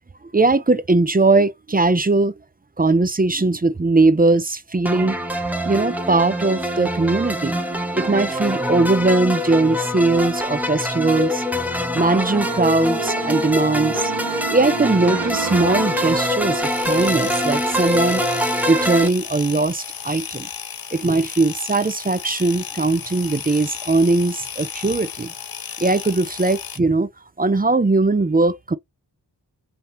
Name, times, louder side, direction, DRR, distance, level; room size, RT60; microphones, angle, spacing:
voice 1, 0.3-2.3 2.8-5.2 5.6-7.6 7.9-11.4 11.9-14.1 14.5-18.2 18.7-20.5 20.9-25.3 25.8-27.1 27.4-28.8, right 3 dB, 20° right, 0.5 m, -19 dB
sound 1, 4.8-19.1, equal, 5° right, 1.0 m, -24 dB
sound 2, 12.0-16.7, right 4 dB, 80° right, 0.8 m, -31 dB
sound 3, 16.6-26.8, left 7 dB, 55° left, 0.7 m, -34 dB
3.4 x 2.7 x 3.2 m
cardioid pair, 40°, 43 cm